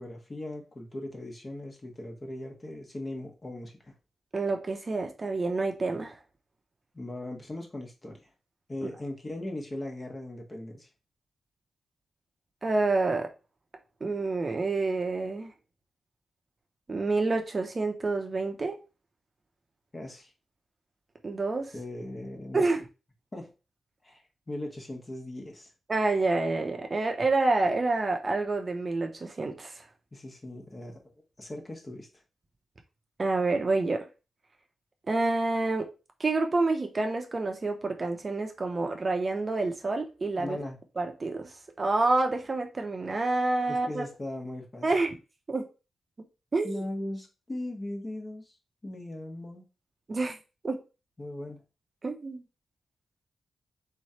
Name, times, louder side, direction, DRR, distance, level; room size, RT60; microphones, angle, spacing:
voice 1, 0.0-3.9 6.9-8.3 8.7-10.9 19.9-20.3 21.7-22.7 23.3-23.5 24.0-25.7 30.1-31.0 31.4-32.1 40.4-40.8 43.7-44.9 46.6-48.5 48.8-49.6 51.2-51.6, left 1 dB, 30° left, 1.3 m, -39 dB
voice 2, 4.3-6.2 12.6-13.3 14.0-15.5 16.9-18.8 21.2-21.7 22.5-22.9 25.9-29.8 33.2-34.1 35.1-35.9 36.2-40.6 41.0-44.0 44.8-45.2 45.5-45.7 46.5-46.8 50.1-50.4 50.6-50.8 52.0-52.4, right 3 dB, 35° right, 0.8 m, -28 dB
3.8 x 3.1 x 4.3 m
cardioid pair, 85°, 0 cm